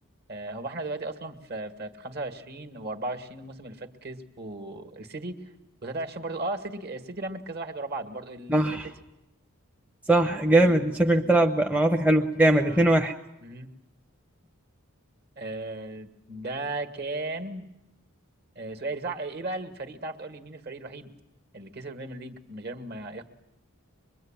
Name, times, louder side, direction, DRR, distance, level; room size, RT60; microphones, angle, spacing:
voice 1, 0.3-5.5 5.8-8.8 10.6-10.9 12.6-12.8 13.4-13.7 15.4-17.7 18.6-21.1 21.5-23.2, right 2 dB, 45° right, 7 dB, 2.1 m, -36 dB
voice 2, 8.5-8.9 10.1-13.1, right 1 dB, 5° right, 3 dB, 0.8 m, -21 dB
25.0 x 22.5 x 9.1 m, 0.91 s
head